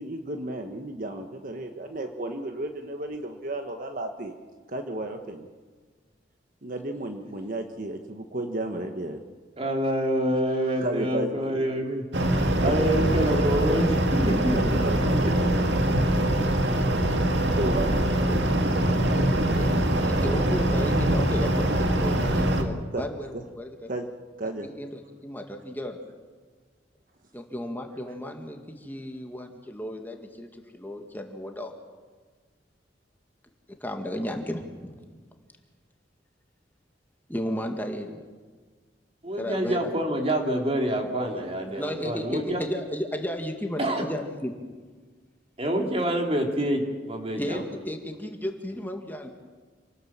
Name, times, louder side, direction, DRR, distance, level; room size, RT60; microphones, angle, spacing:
voice 1, 0.0-4.3 4.7-5.5 6.6-9.2 10.5-11.3 12.6-13.5 14.5-15.6 17.5-20.4 22.9-23.1 23.3-23.4 23.9-24.1 24.4-24.7, right 1 dB, 50° right, 5 dB, 1.4 m, -33 dB
voice 2, 9.6-12.0 12.6-14.8 15.2-15.3 39.2-42.6 43.8-44.0 45.6-47.6, right 1 dB, 35° right, 2 dB, 3.3 m, -26 dB
sound 1, 12.1-22.6, right 1 dB, 85° right, 2.2 m, -23 dB
voice 3, 20.1-23.9 24.6-26.0 27.3-31.7 33.8-35.2 37.3-38.1 39.3-39.9 41.7-44.5 47.3-49.3, left 1 dB, 10° left, 3 dB, 2.0 m, -34 dB
28.0 x 19.0 x 7.5 m, 1.4 s
head